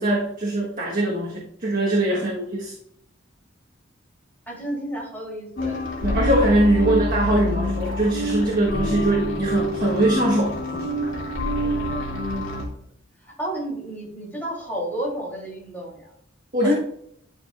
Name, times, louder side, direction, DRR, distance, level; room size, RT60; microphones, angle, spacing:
voice 1, 0.0-2.7 6.0-10.9 16.5-16.7, right 1 dB, 45° right, -4 dB, 1.4 m, -22 dB
voice 2, 4.5-5.9 11.6-12.8 13.2-16.1 16.6-16.7, right 1 dB, 10° left, -4 dB, 3.3 m, -32 dB
sound 1, 5.6-12.6, left 1 dB, 85° left, 2.3 m, -26 dB
11.5 x 6.5 x 2.5 m, 0.71 s
head